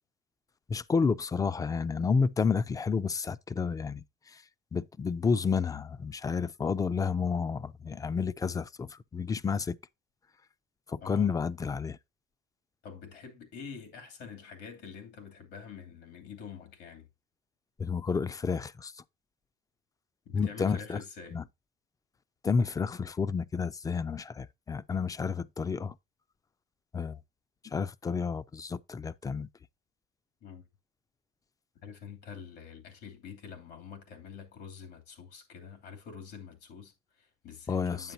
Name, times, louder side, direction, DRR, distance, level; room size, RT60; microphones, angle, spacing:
voice 1, 0.7-4.0 4.7-9.8 10.9-12.0 17.8-18.9 20.3-21.0 21.3-21.4 22.4-25.9 26.9-27.2 27.6-29.5 37.7-38.1, left 5 dB, 20° left, 0.4 m, -30 dB
voice 2, 11.0-11.3 12.8-17.1 20.2-21.4 30.4-30.6 31.8-38.1, left 6 dB, 80° left, 2.8 m, -46 dB
9.1 x 7.8 x 2.7 m
cardioid pair, 110°, 17 cm